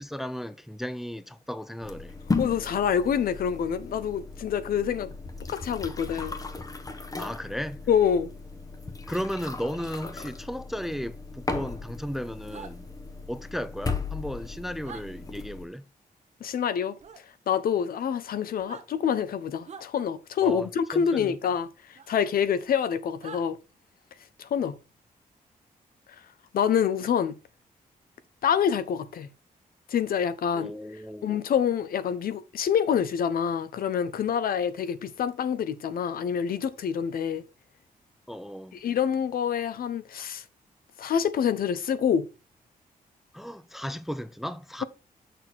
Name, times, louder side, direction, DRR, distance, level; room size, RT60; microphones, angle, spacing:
voice 1, 0.0-2.1 7.2-7.8 9.1-12.9 13.3-15.8 20.4-21.4 30.5-31.4 38.3-38.8 43.3-44.8, equal, ahead, 0.4 m, -35 dB
sound 1, 1.8-15.6, left 4 dB, 25° left, 0.9 m, -36 dB
voice 2, 2.4-5.1 5.5-6.3 7.9-8.3 16.4-17.0 17.5-23.6 24.4-24.7 26.5-27.3 28.4-29.3 29.9-30.7 31.2-37.4 38.7-40.4 41.0-42.3, left 8 dB, 75° left, 0.9 m, -26 dB
sound 2, 12.5-12.7 14.8-15.0 17.0-17.2 18.5-18.9 19.6-19.9 22.0-22.1 23.2-23.4, right 6 dB, 45° right, 1.1 m, -43 dB
6.6 x 6.3 x 4.2 m
wide cardioid pair, 155°, 15 cm